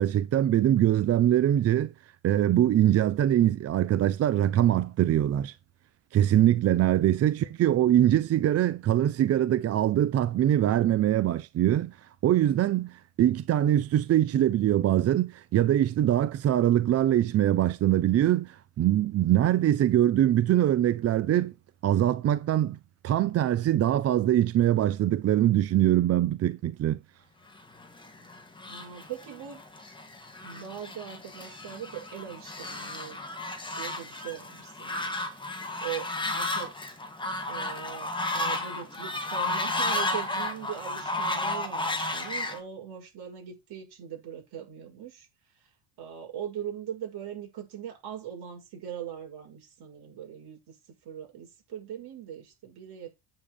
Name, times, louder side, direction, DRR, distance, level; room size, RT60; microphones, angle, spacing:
voice 1, 0.0-1.9 2.2-5.5 6.1-21.5 21.8-22.8 23.0-27.0, right 12 dB, 35° right, 0.4 m, -23 dB
Fowl, 27.8-42.6, left 2 dB, 10° left, 2.2 m, -33 dB
voice 2, 28.7-29.6 30.4-33.2 33.8-35.1 35.4-36.9 37.5-45.3 46.0-50.7 51.0-53.1, right 9 dB, 55° right, 6.6 m, -40 dB
8.6 x 7.2 x 5.0 m
cardioid pair, 145°, 48 cm